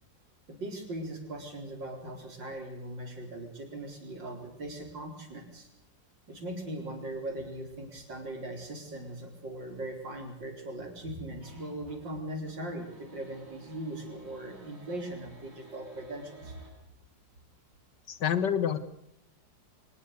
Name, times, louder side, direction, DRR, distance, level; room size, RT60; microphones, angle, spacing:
voice 1, 0.5-5.7 6.3-16.6, right 1 dB, 75° right, 4 dB, 5.1 m, -39 dB
sound 1, 11.4-12.1 12.4-16.7, right 3 dB, 35° right, 8.2 m, -54 dB
voice 2, 18.1-18.8, left 8 dB, 70° left, 13 dB, 2.1 m, -27 dB
24.5 x 20.5 x 6.7 m, 0.81 s
omnidirectional pair, 2.0 m